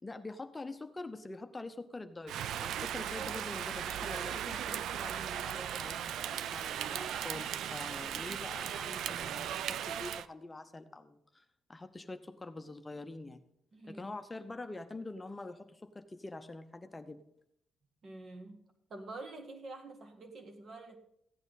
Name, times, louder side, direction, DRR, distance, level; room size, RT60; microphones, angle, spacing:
voice 1, 0.0-2.3 2.6-13.4 13.9-17.2, left 2 dB, 20° left, 0.7 m, -45 dB
Rain, 2.3-10.3, right 10 dB, 75° right, 0.4 m, -37 dB
voice 2, 13.7-14.1 18.0-18.6 18.9-21.0, right 2 dB, 50° right, 1.8 m, -47 dB
15.0 x 8.7 x 4.1 m
cardioid pair, 90°, 0 cm